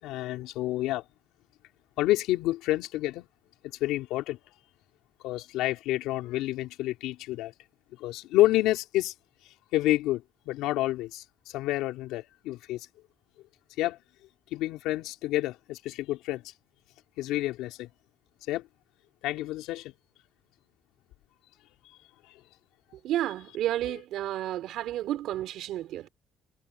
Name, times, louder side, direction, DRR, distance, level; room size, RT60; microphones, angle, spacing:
voice 1, 0.0-1.0 2.0-3.3 3.8-4.4 5.2-7.5 8.0-9.1 9.7-12.9 13.8-14.0 14.5-16.4 17.2-17.9 18.5-18.7 19.2-19.9 22.2-22.4 23.9-24.0, left 16 dB, 85° left, 3.3 m, -29 dB
voice 2, 23.0-26.1, right 13 dB, 75° right, 4.2 m, -31 dB
supercardioid pair, 80°, 0 cm